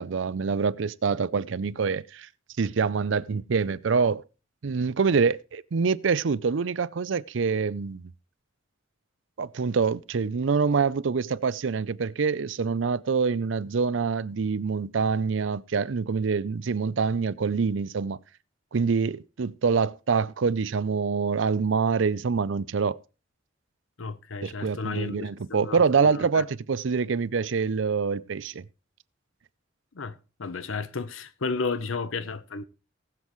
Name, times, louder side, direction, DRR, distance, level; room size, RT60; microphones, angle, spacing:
voice 1, 0.0-2.3 2.6-4.2 4.6-8.1 9.4-18.2 18.7-23.0 24.4-28.6, right 5 dB, 70° right, 0.5 m, -25 dB
voice 2, 24.0-26.4 29.9-32.6, left 4 dB, 85° left, 0.8 m, -33 dB
19.0 x 7.4 x 3.1 m
head